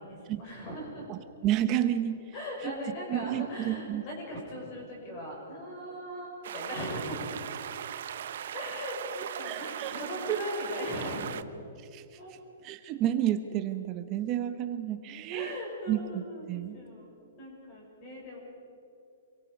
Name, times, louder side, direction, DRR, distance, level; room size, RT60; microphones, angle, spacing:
voice 1, 0.0-1.1 2.3-7.4 8.5-11.4 12.2-12.3 15.3-18.4, equal, 25° left, -2 dB, 6.4 m, -39 dB
voice 2, 1.1-2.1 2.6-2.7 3.1-4.0 9.4-9.9 10.3-10.4 11.9-12.0 12.6-15.6 15.9-16.2 16.5-16.8, right 11 dB, 20° right, 9 dB, 0.9 m, -30 dB
sound 1, 6.4-11.4, right 9 dB, 55° right, 0.7 m, -39 dB
27.0 x 22.5 x 5.3 m, 2.6 s
hypercardioid pair, 175°, 0 cm